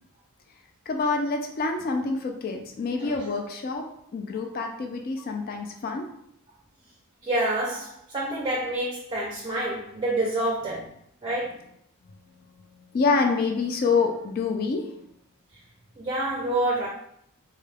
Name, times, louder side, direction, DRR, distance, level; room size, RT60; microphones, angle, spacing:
voice 1, 0.9-3.9 4.1-6.1 12.6-14.9, left 4 dB, 40° left, 3 dB, 0.3 m, -27 dB
voice 2, 7.2-10.8 11.2-11.5 16.0-16.9, right 1 dB, 20° right, -2 dB, 0.5 m, -27 dB
3.6 x 2.2 x 3.3 m, 0.71 s
head